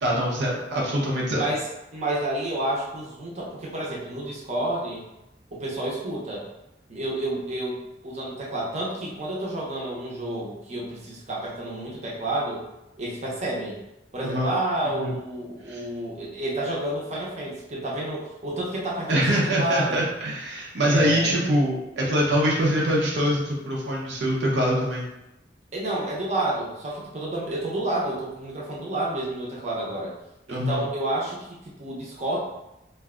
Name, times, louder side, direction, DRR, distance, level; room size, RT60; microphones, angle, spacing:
voice 1, 0.0-1.4 14.2-14.5 15.0-15.1 15.7-15.8 19.1-25.0 30.5-30.8, equal, 75° right, -3 dB, 0.6 m, -24 dB
voice 2, 1.3-5.0 5.5-6.5 6.9-12.6 13.0-13.8 14.1-19.2 19.6-20.0 20.8-21.4 25.7-30.1 30.5-32.4, right 1 dB, 40° right, -4 dB, 0.7 m, -30 dB
2.6 x 2.2 x 3.6 m, 0.91 s
head